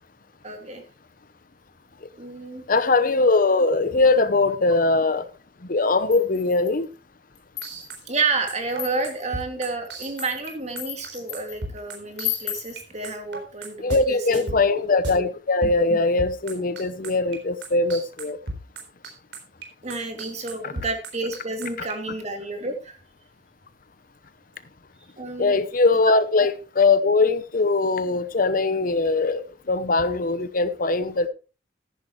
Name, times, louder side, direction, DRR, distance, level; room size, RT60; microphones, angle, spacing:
voice 1, 0.4-0.8 2.2-2.6 8.1-14.6 19.8-23.0 25.2-25.6, right 3 dB, 40° right, 2.7 m, -30 dB
voice 2, 2.7-5.2 5.6-6.9 13.8-18.4 20.6-20.8 21.8-21.9 25.4-31.3, left 3 dB, 55° left, 0.9 m, -21 dB
sound 1, 6.1-6.8 7.3-8.0 8.7-9.2 9.8-11.6 12.2-12.8, left 14 dB, 85° left, 2.1 m, -34 dB
sound 2, 7.6-12.8 13.0-14.0 14.3-15.2 15.6-17.4 17.6-21.9, right 2 dB, 85° right, 4.2 m, -34 dB
14.0 x 11.0 x 3.2 m
head